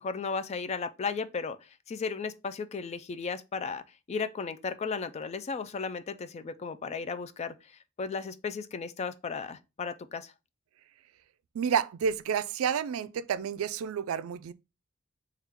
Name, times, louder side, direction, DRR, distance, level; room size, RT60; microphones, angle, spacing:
voice 1, 0.0-3.8 4.1-10.3, left 5 dB, 30° left, 0.3 m, -35 dB
voice 2, 11.5-14.5, right 7 dB, 85° right, 0.3 m, -30 dB
3.5 x 2.4 x 4.4 m
head